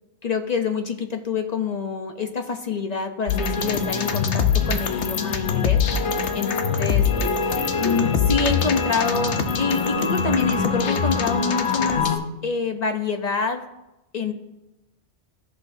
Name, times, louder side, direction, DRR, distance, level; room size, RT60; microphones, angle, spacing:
voice 1, 0.2-6.5 6.8-7.0 7.8-12.1 12.4-13.6 14.1-14.3, left 5 dB, 45° left, 5 dB, 0.6 m, -26 dB
sound 1, 3.3-12.2, left 6 dB, 70° left, 1.0 m, -23 dB
14.0 x 6.0 x 2.6 m, 0.95 s
omnidirectional pair, 1.2 m